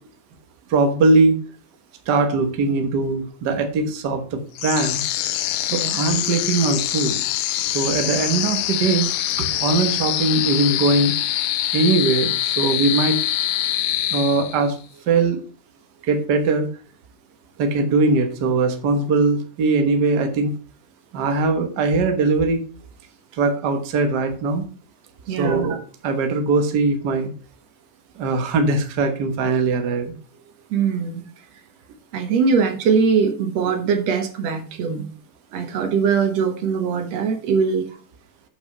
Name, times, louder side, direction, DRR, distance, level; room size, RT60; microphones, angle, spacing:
voice 1, 0.7-1.4 2.1-5.1 5.7-7.1 7.7-9.1 9.4-11.1 11.7-13.2 14.1-14.7 15.1-15.4 16.1-16.7 17.6-20.5 21.1-22.6 23.3-24.6 25.4-27.3 28.2-30.1, right 3 dB, 75° right, 6 dB, 0.9 m, -20 dB
sound 1, 4.6-14.8, left 13 dB, 90° left, 2.3 m, -24 dB
voice 2, 25.3-25.6 30.7-31.2 32.1-35.1 35.5-37.9, right 6 dB, 60° right, 6 dB, 2.0 m, -21 dB
8.2 x 5.7 x 5.3 m, 0.40 s
omnidirectional pair, 3.9 m